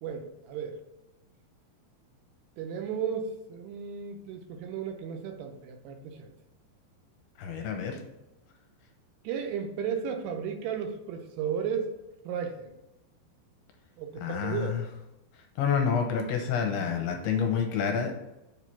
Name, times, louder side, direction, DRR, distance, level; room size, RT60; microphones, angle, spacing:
voice 1, 0.0-0.8 2.6-6.3 9.2-11.9 12.3-12.7 14.0-14.8 16.6-17.0, right 7 dB, 80° right, 5 dB, 2.6 m, -34 dB
voice 2, 7.4-8.0 14.2-14.8 15.6-18.2, left 7 dB, 80° left, 4 dB, 2.6 m, -28 dB
7.2 x 3.2 x 5.6 m, 0.93 s
omnidirectional pair, 4.9 m